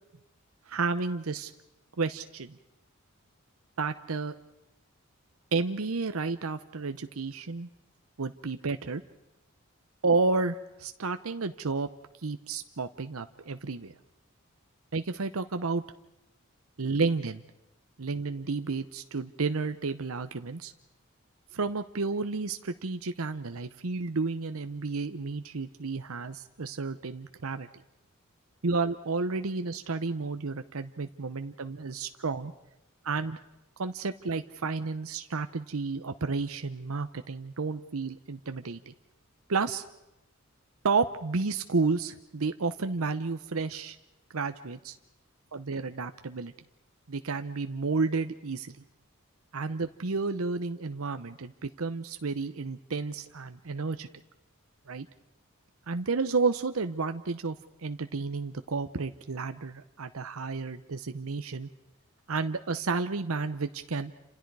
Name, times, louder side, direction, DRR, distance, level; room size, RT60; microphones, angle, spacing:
voice 1, 0.7-1.5 2.0-2.6 3.8-4.3 5.5-7.7 8.2-9.0 10.0-11.9 12.2-13.9 14.9-15.8 16.8-17.4 18.0-20.7 21.5-27.7 28.6-32.5 33.0-33.4 33.8-38.9 39.5-39.8 40.8-44.0 44.3-45.0 45.5-46.5 47.1-48.8 49.5-54.1 54.9-55.1 55.9-57.6 57.8-61.7 62.3-64.1, right 4 dB, 85° right, 9 dB, 0.8 m, -31 dB
28.5 x 27.0 x 4.8 m, 0.90 s
head